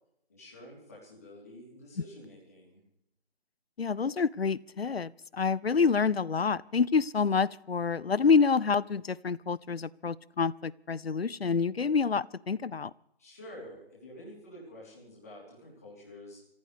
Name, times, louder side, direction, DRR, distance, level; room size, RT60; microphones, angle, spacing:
voice 1, 0.3-2.8 13.2-16.4, left 1 dB, 15° left, -5 dB, 3.5 m, -49 dB
voice 2, 3.8-12.9, left 5 dB, 65° left, 23 dB, 0.6 m, -27 dB
26.0 x 15.5 x 3.4 m, 0.74 s
figure-of-eight pair, 180°, 32 cm